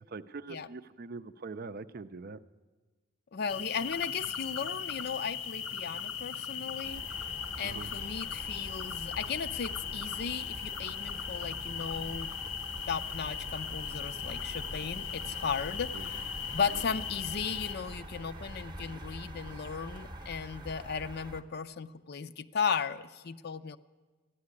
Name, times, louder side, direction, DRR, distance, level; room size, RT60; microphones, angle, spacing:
voice 1, 0.1-2.4 7.6-7.9 15.9-16.1 16.7-16.8, right 4 dB, 45° right, 12 dB, 0.5 m, -43 dB
voice 2, 3.3-7.0 7.6-12.3 12.9-23.8, left 6 dB, 50° left, 13 dB, 0.5 m, -36 dB
sound 1, 3.5-17.8, left 8 dB, 85° left, 1.2 m, -38 dB
sound 2, 6.8-21.4, right 1 dB, 20° right, 0.8 m, -45 dB
14.0 x 10.5 x 9.7 m, 1.3 s
head